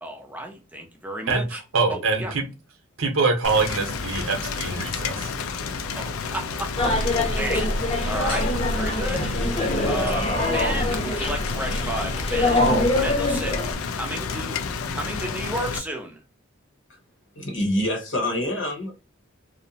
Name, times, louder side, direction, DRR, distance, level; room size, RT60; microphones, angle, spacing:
voice 1, 0.0-1.6 1.9-2.3 6.0-7.7 8.1-9.3 9.9-13.6 13.9-14.6 14.9-16.2, right 1 dB, 10° right, 0.4 m, -32 dB
voice 2, 1.3-2.4 3.0-5.3, right 4 dB, 75° right, 0.7 m, -24 dB
Rain, 3.4-15.8, left 5 dB, 85° left, 0.4 m, -31 dB
sound 1, 6.8-13.7, left 1 dB, 25° left, 0.8 m, -24 dB
voice 3, 17.4-19.0, left 1 dB, 60° left, 0.8 m, -26 dB
2.7 x 2.1 x 2.6 m
head